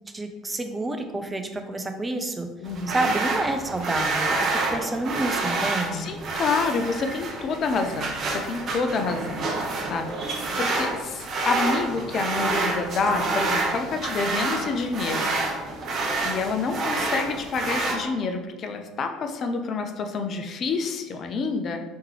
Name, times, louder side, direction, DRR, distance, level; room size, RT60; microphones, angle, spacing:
voice 1, 0.1-2.5 2.9-6.1, right 2 dB, 15° right, 6 dB, 0.5 m, -29 dB
voice 2, 2.6-3.0 5.9-15.4 15.9-21.8, left 4 dB, 40° left, 5 dB, 0.5 m, -28 dB
sound 1, 2.6-17.9, right 3 dB, 40° right, 0.8 m, -28 dB
4.3 x 3.6 x 3.3 m, 1.2 s
figure-of-eight pair, 60°, 0 cm